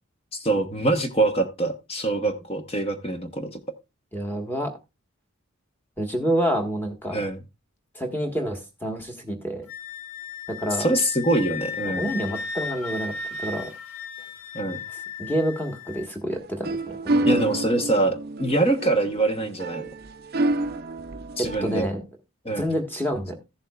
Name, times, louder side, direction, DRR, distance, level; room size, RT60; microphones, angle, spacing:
voice 1, 0.3-3.5 7.1-7.4 10.8-12.0 14.5-14.8 17.2-19.9 21.4-21.9 22.4-22.7, right 2 dB, 25° left, 6 dB, 1.1 m, -24 dB
voice 2, 4.1-4.7 6.0-7.2 7.9-9.7 10.5-10.9 11.9-13.7 15.2-17.3 21.4-22.0 22.5-23.4, equal, 10° left, 2 dB, 1.5 m, -28 dB
Wind instrument woodwind instrument, 9.7-16.1, left 5 dB, 80° left, 1.4 m, -35 dB
sound 1, 16.3-21.8, right 2 dB, 45° right, 0.5 m, -28 dB
15.0 x 7.3 x 2.4 m, 0.24 s
head